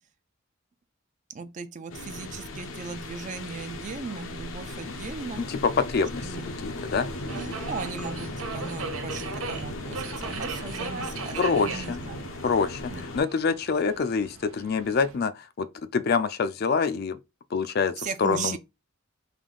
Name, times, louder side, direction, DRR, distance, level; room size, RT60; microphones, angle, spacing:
voice 1, 1.3-5.4 6.2-6.5 7.2-12.3 12.9-13.0 18.0-18.6, right 5 dB, 35° right, 0.4 m, -37 dB
sound 1, 1.9-13.2, left 2 dB, 75° left, 0.7 m, -37 dB
Subway metro underground, 4.6-15.2, right 5 dB, 90° right, 0.6 m, -40 dB
voice 2, 5.4-7.1 11.4-12.0 12.4-17.2 17.5-18.6, left 5 dB, 50° left, 0.4 m, -26 dB
3.5 x 2.7 x 3.7 m
head